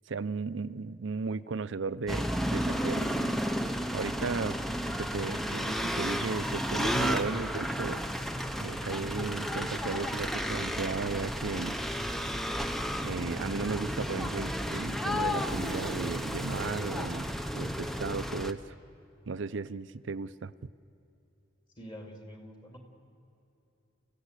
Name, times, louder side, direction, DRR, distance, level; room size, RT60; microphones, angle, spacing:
voice 1, 0.1-3.1 3.9-4.6 5.0-8.0 8.6-11.8 13.0-18.6 19.3-20.5, right 4 dB, 60° right, 15 dB, 0.5 m, -35 dB
sound 1, 2.1-18.5, equal, ahead, 0.6 m, -32 dB
voice 2, 21.8-22.8, equal, 20° left, 2 dB, 2.5 m, -46 dB
29.0 x 16.0 x 8.2 m, 2.8 s
head